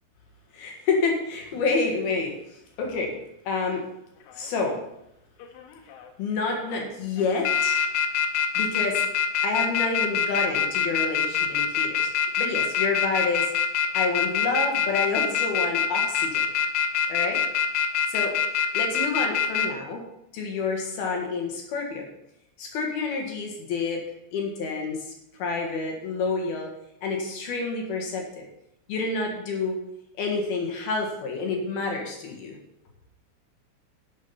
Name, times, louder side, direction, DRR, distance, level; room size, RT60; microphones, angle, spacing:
voice 1, 0.5-3.2 3.5-3.8 4.3-4.8 6.2-7.8 8.6-9.0 9.4-12.1 12.4-13.5 13.9-16.5 17.1-17.4 18.1-18.4 18.7-20.0 20.3-22.1 22.6-24.0 24.3-25.1 25.4-26.7 27.0-28.4 28.9-29.8 30.2-32.6, left 4 dB, 60° left, 1 dB, 3.1 m, -28 dB
sound 1, 4.4-4.7 5.4-6.1 6.5-6.8 7.2-19.7, left 8 dB, 85° left, 3.4 m, -24 dB
11.0 x 7.2 x 5.7 m, 0.83 s
omnidirectional pair, 5.5 m